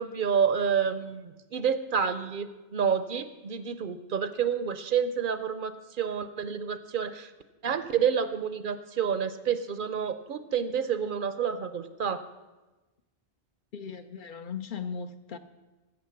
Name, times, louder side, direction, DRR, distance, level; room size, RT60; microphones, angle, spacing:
voice 1, 0.0-7.3 7.6-12.2, right 7 dB, 60° right, 0.7 m, -29 dB
voice 2, 13.7-15.4, left 6 dB, 60° left, 0.7 m, -37 dB
15.5 x 6.5 x 5.8 m
omnidirectional pair, 1.0 m